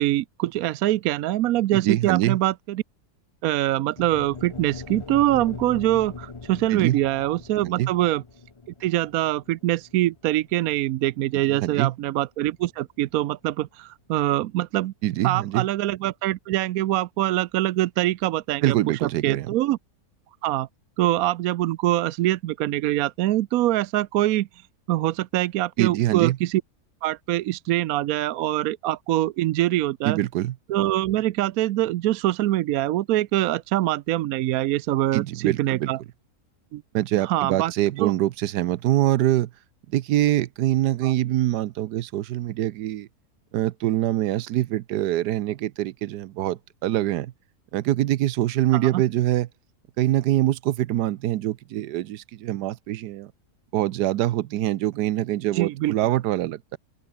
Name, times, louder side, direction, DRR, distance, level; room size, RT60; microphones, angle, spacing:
voice 1, 0.0-2.8 3.4-8.2 8.8-14.9 15.2-18.7 19.0-19.8 20.4-20.7 21.0-24.5 24.9-26.6 27.0-30.2 30.7-36.0 36.7-36.8 37.2-37.7 38.0-38.1 41.0-41.1 48.7-49.0 55.5-55.9, right 15 dB, 70° right, 1.0 m, -24 dB
voice 2, 1.7-2.4 6.7-7.0 7.6-7.9 11.4-11.9 15.0-15.7 18.6-19.5 25.8-26.4 30.0-30.5 35.1-35.9 36.9-39.5 39.9-43.1 43.5-47.3 47.7-49.5 50.0-53.3 53.7-56.8, right 14 dB, 85° right, 1.3 m, -24 dB
sound 1, 4.0-12.2, left 4 dB, 25° left, 0.8 m, -41 dB
open air
omnidirectional pair, 1.7 m